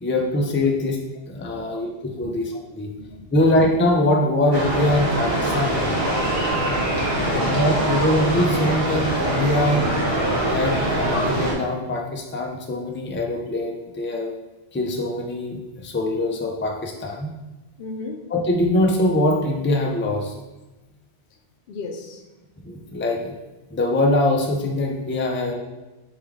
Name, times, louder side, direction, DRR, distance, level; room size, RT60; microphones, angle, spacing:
voice 1, 0.0-1.0 1.3-2.9 3.3-6.0 7.3-9.9 10.5-14.3 14.7-17.3 18.3-20.3 22.6-23.3 23.7-25.5, left 1 dB, 20° left, 1 dB, 0.3 m, -23 dB
voice 2, 2.2-2.6 3.0-3.4 6.0-6.2 7.2-7.6 17.8-18.2 21.7-22.2, left 4 dB, 70° left, 3 dB, 0.8 m, -35 dB
sound 1, 4.5-11.5, right 1 dB, 70° right, 1.3 m, -23 dB
4.5 x 3.4 x 3.5 m, 1.1 s
omnidirectional pair, 1.0 m